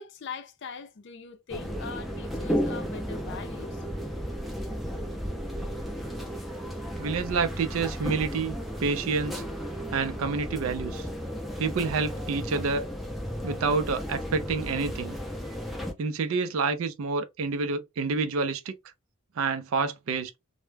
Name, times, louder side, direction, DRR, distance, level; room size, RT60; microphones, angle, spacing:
voice 1, 0.0-3.8, left 5 dB, 55° left, 0.5 m, -41 dB
sound 1, 1.5-15.9, equal, ahead, 0.4 m, -34 dB
voice 2, 7.0-9.4 9.9-11.1 11.6-12.9 13.4-15.2 16.0-18.7 19.4-20.3, right 4 dB, 70° right, 0.4 m, -28 dB
2.2 x 2.0 x 3.2 m
head